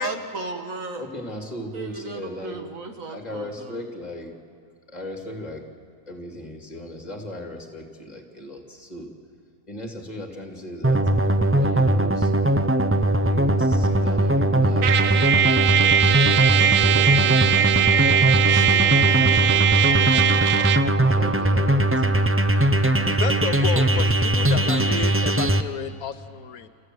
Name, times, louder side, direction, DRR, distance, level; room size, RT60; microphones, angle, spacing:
voice 1, 0.0-1.1 1.7-3.9, right 3 dB, 65° right, 5 dB, 2.0 m, -35 dB
voice 2, 1.0-2.6 3.1-4.3 4.9-5.6 6.1-9.1 9.7-11.0 11.5-12.3 13.2-16.1 16.7-18.1 18.6-20.7 21.1-21.9, left 1 dB, 25° left, 2 dB, 2.6 m, -38 dB
sound 1, 10.8-25.6, right 1 dB, 20° right, 0.4 m, -20 dB
Trumpet, 14.8-20.9, right 10 dB, 80° right, 1.2 m, -20 dB
voice 3, 23.2-26.7, left 8 dB, 75° left, 11 dB, 1.3 m, -31 dB
28.5 x 14.5 x 7.8 m, 2.5 s
omnidirectional pair, 1.6 m